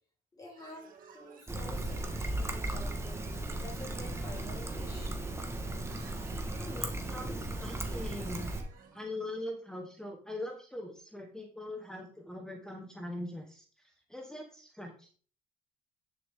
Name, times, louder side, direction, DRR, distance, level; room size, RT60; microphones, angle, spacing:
voice 1, 0.3-5.2, left 1 dB, 20° left, -1 dB, 4.9 m, -49 dB
sound 1, 0.6-9.0, right 5 dB, 55° right, 2.3 m, -54 dB
Trickle dribble, 1.5-8.6, right 1 dB, 15° right, 1.6 m, -36 dB
voice 2, 6.6-8.5 8.9-15.1, left 1 dB, 5° left, 2 dB, 1.4 m, -42 dB
10.5 x 6.6 x 3.7 m, 0.41 s
cardioid pair, 110°, 17 cm